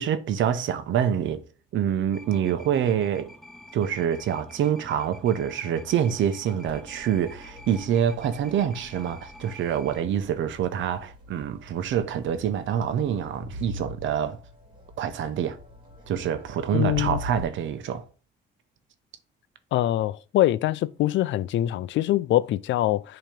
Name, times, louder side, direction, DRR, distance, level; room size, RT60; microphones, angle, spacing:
voice 1, 0.0-1.4 1.7-3.3 3.7-14.4 15.0-15.6 16.1-18.0, right 9 dB, 70° right, 0.8 m, -26 dB
sound 1, 2.1-10.0, left 1 dB, ahead, 1.8 m, -48 dB
Crowd, 6.7-17.4, equal, 25° right, 2.0 m, -42 dB
voice 2, 16.7-17.2 19.7-23.2, left 14 dB, 70° left, 0.4 m, -24 dB
7.4 x 3.0 x 5.1 m
cardioid pair, 90°, 20 cm